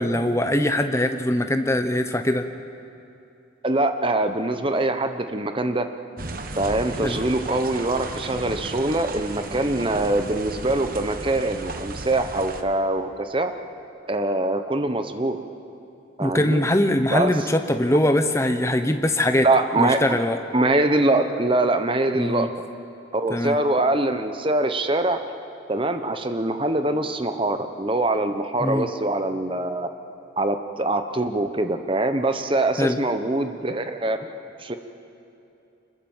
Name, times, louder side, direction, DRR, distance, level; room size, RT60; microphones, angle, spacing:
voice 1, 0.0-2.5 7.0-7.2 16.2-19.5 19.8-20.4 22.1-22.5 23.3-23.6 28.6-28.9 32.8-33.0, left 1 dB, 15° left, 7 dB, 1.0 m, -22 dB
voice 2, 3.6-5.9 6.5-13.5 14.1-15.4 16.2-16.6 17.1-17.3 19.4-20.0 20.5-22.5 23.1-25.2 25.7-29.9 30.4-34.2 34.6-34.8, right 2 dB, 25° right, 8 dB, 1.0 m, -23 dB
sound 1, 6.2-12.6, right 2 dB, 45° right, 1.2 m, -35 dB
26.0 x 21.0 x 7.4 m, 2.7 s
head